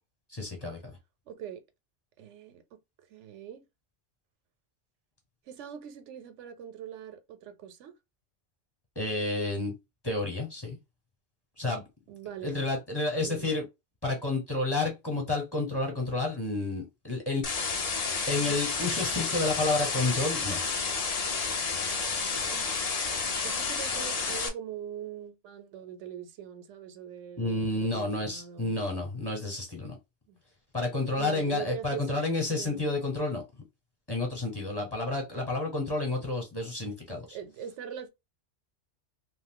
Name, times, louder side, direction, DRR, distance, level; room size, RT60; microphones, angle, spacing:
voice 1, 0.3-0.9 8.9-9.7 10.0-10.8 11.6-11.8 12.4-13.7 14.0-17.7 18.3-20.6 27.4-30.0 30.7-33.4 34.1-37.4, left 2 dB, 20° left, 1.0 m, -30 dB
voice 2, 1.3-1.6 2.2-2.6 3.1-3.6 5.5-7.9 12.1-12.6 13.2-13.5 18.4-18.6 22.3-22.7 23.4-28.8 30.3-30.4 31.1-32.2 32.5-32.9 37.3-38.1, right 9 dB, 90° right, 1.0 m, -42 dB
sound 1, 17.4-24.5, left 4 dB, 45° left, 0.5 m, -30 dB
2.5 x 2.3 x 3.6 m
omnidirectional pair, 1.2 m